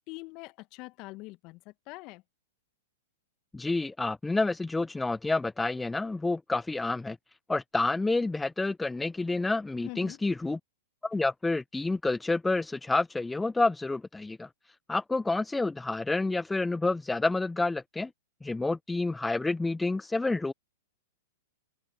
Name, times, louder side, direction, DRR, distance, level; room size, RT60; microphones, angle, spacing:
voice 1, 0.1-2.2 9.8-10.2, left 23 dB, 40° left, 1.2 m, -44 dB
voice 2, 3.5-7.2 7.5-10.6 11.0-14.5 14.9-18.1 18.4-20.5, left 3 dB, 10° left, 0.4 m, -29 dB
hypercardioid pair, 115°, 0 cm